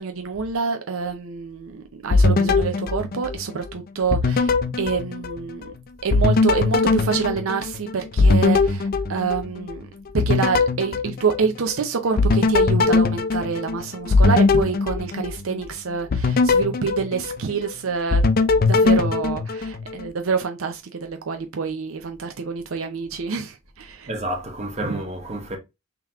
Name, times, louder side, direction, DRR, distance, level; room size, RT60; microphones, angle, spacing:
voice 1, 0.0-5.7 6.0-18.2 18.6-24.1 24.8-25.0, right 5 dB, 75° right, 0.6 m, -27 dB
sound 1, 2.1-3.7 4.1-5.7 6.1-9.8 10.2-11.8 12.2-15.6 16.1-17.7 18.1-20.1, left 3 dB, 45° left, 0.4 m, -20 dB
voice 2, 24.1-25.6, right 1 dB, 35° right, 1.1 m, -29 dB
3.8 x 2.9 x 3.5 m
head